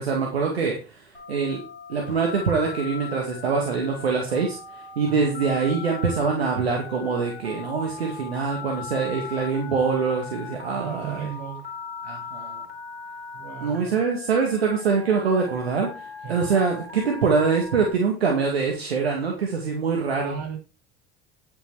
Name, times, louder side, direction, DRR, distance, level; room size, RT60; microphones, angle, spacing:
voice 1, 0.0-1.6 1.9-11.3 12.0-12.6 13.6-20.4, right 5 dB, 85° right, 0 dB, 2.2 m, -24 dB
Telephone, 1.1-17.9, left 5 dB, 90° left, 3.1 m, -39 dB
voice 2, 10.7-11.6 13.3-14.0 16.2-16.4 20.1-20.6, right 9 dB, 55° right, 3 dB, 6.3 m, -35 dB
11.0 x 6.9 x 4.9 m, 0.32 s
hypercardioid pair, 70°, 31 cm